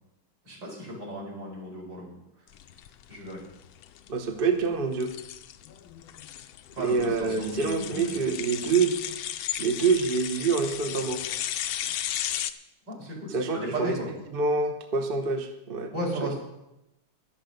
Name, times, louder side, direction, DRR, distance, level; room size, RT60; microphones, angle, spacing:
voice 1, 0.4-2.1 3.1-3.4 6.7-8.1 12.9-14.1 15.9-16.3, equal, 65° right, -3 dB, 5.8 m, -35 dB
sound 1, 2.5-12.5, left 12 dB, 85° left, 1.4 m, -35 dB
voice 2, 4.1-5.1 6.8-8.9 9.6-11.2 13.3-14.0 14.3-15.9, right 4 dB, 40° right, 5 dB, 0.9 m, -26 dB
11.5 x 11.5 x 5.3 m, 0.88 s
omnidirectional pair, 2.2 m